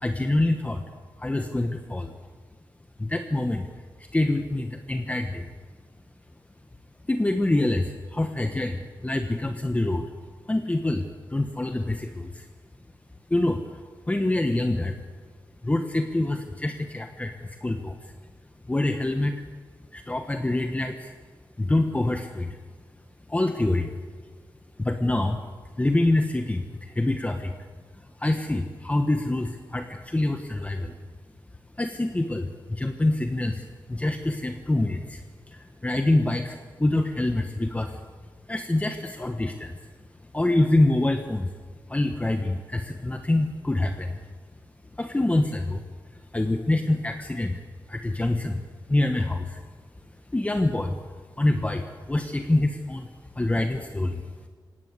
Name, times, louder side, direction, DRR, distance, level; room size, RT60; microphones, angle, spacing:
voice 1, 0.0-0.8 1.2-2.1 3.0-3.7 4.0-5.5 7.1-10.1 10.5-12.5 13.3-13.8 14.1-15.0 15.6-17.3 17.6-18.1 18.7-19.4 19.9-21.1 21.6-22.6 23.3-23.9 24.8-25.4 25.8-27.6 27.9-30.9 31.8-38.0 38.5-39.8 40.3-41.5 41.9-44.2 45.0-45.8 46.1-48.6 48.9-49.6 50.3-51.0 51.4-53.1 53.3-54.2, left 2 dB, 20° left, 5 dB, 1.3 m, -26 dB
19.0 x 17.5 x 8.3 m, 1.5 s
wide cardioid pair, 90°, 8 cm